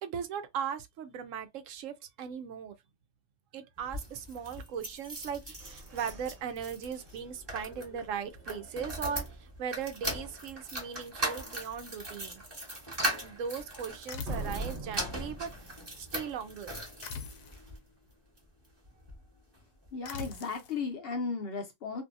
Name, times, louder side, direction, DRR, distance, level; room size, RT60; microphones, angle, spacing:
voice 1, 0.0-2.7 3.5-12.4 13.2-15.5 16.0-16.7, right 7 dB, 75° right, 0.9 m, -38 dB
sound 1, 3.8-17.8 18.4-19.2 19.5-19.6 19.9-20.0, right 1 dB, 20° right, 1.1 m, -39 dB
sound 2, 5.0-8.9 9.3-9.4 9.8-10.2 10.6-10.7 11.2-11.3 14.2-16.9, right 1 dB, 50° right, 1.0 m, -44 dB
sound 3, 14.1-14.7 17.0-17.7 20.1-20.8, left 5 dB, 90° left, 1.0 m, -42 dB
voice 2, 19.9-22.0, left 4 dB, 55° left, 0.8 m, -35 dB
2.6 x 2.5 x 2.5 m
omnidirectional pair, 1.4 m